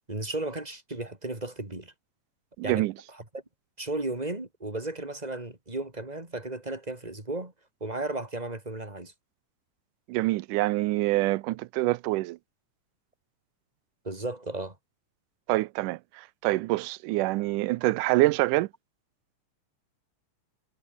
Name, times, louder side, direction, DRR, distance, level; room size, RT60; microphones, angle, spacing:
voice 1, 0.1-1.9 2.6-2.9 3.1-3.4 3.8-7.5 7.8-9.1 14.0-14.8, right 2 dB, 10° right, 3.6 m, -34 dB
voice 2, 2.6-2.9 10.1-12.4 15.5-18.7, right 19 dB, 90° right, 2.2 m, -26 dB
omnidirectional pair, 3.6 m